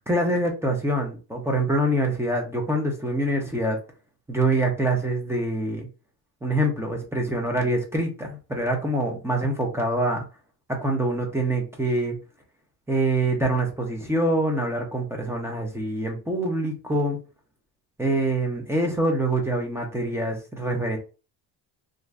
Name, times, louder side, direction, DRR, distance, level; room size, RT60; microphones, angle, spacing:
voice 1, 0.1-3.8 4.3-5.9 6.4-10.2 10.7-12.2 12.9-17.2 18.0-21.0, right 1 dB, 5° right, 1 dB, 0.5 m, -25 dB
3.3 x 2.6 x 2.4 m, 0.33 s
cardioid pair, 160°, 43 cm